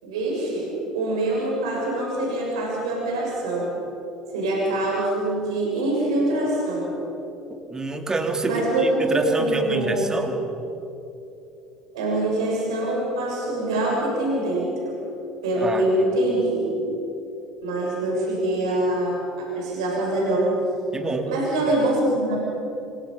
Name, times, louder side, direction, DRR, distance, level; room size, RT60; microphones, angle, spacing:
voice 1, 0.0-3.7 4.3-6.9 8.4-10.1 11.9-14.9 15.4-16.8 17.6-19.2 19.5-20.5 21.3-22.4, right 1 dB, 75° right, -3 dB, 7.0 m, -24 dB
voice 2, 7.5-10.4 15.6-15.8 20.9-21.3, right 2 dB, 20° right, 5 dB, 3.0 m, -27 dB
26.0 x 23.5 x 5.6 m, 2.8 s
figure-of-eight pair, 65°, 3 cm